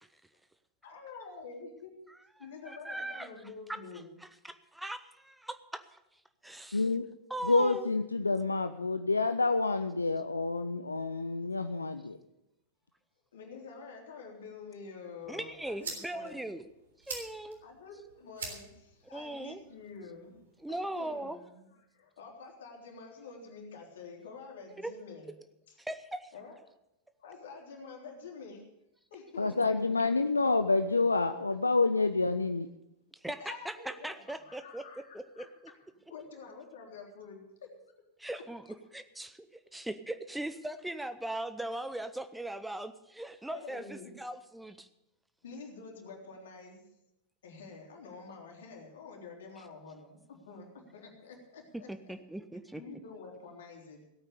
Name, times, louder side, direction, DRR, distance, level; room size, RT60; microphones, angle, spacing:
voice 1, 0.8-2.0 2.4-4.1 13.3-16.5 17.6-20.4 20.7-25.3 25.7-25.8 26.3-26.6 27.2-28.7 29.1-30.0 33.4-35.5 36.1-37.7 38.2-38.7 43.5-44.1 45.4-46.9 47.4-51.9 52.7-54.1, left 4 dB, 60° left, 0 dB, 3.5 m, -48 dB
voice 2, 2.4-3.3 4.4-6.9 7.3-7.9 15.3-16.6 17.1-17.6 19.1-19.6 20.6-21.4 24.8-24.9 25.8-26.3 33.2-34.8 35.1-35.5 38.2-38.6 38.9-44.9 51.9-52.8, right 1 dB, 5° right, 11 dB, 0.7 m, -39 dB
voice 3, 6.7-7.0 7.4-12.2 29.4-32.7, left 3 dB, 80° left, 10 dB, 0.5 m, -28 dB
sound 1, 15.2-21.2, right 4 dB, 65° right, 3.5 m, -47 dB
17.0 x 9.1 x 6.7 m, 0.86 s
figure-of-eight pair, 90°, 0 cm